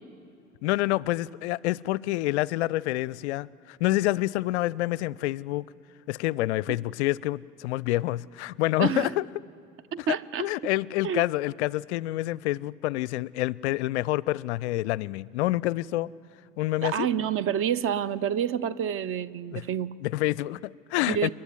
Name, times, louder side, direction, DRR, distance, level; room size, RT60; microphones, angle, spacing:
voice 1, 0.6-5.6 6.1-9.2 10.4-16.1 16.6-17.1 19.5-19.6 20.0-21.3, left 17 dB, 60° left, 0.5 m, -27 dB
voice 2, 8.8-9.1 9.9-10.5 11.0-11.2 16.8-19.9 21.1-21.3, right 9 dB, 35° right, 0.6 m, -28 dB
29.0 x 11.5 x 9.5 m
figure-of-eight pair, 65°, 39 cm